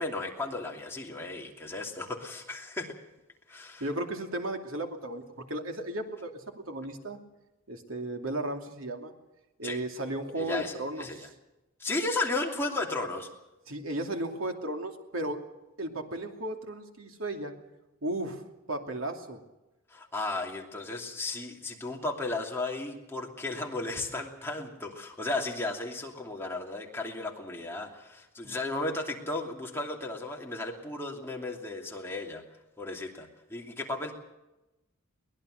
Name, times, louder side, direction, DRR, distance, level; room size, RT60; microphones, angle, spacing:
voice 1, 0.0-3.0 3.5-3.8 9.6-9.8 10.4-11.3 11.8-13.3 19.9-32.4 32.8-34.1, left 2 dB, 10° left, 0 dB, 2.8 m, -34 dB
voice 2, 3.8-7.2 7.7-9.1 9.6-11.3 13.7-15.4 15.8-17.5 18.0-18.4 18.7-19.4 28.4-28.5, right 1 dB, 85° right, 4 dB, 2.7 m, -35 dB
23.0 x 19.5 x 6.6 m, 1.0 s
head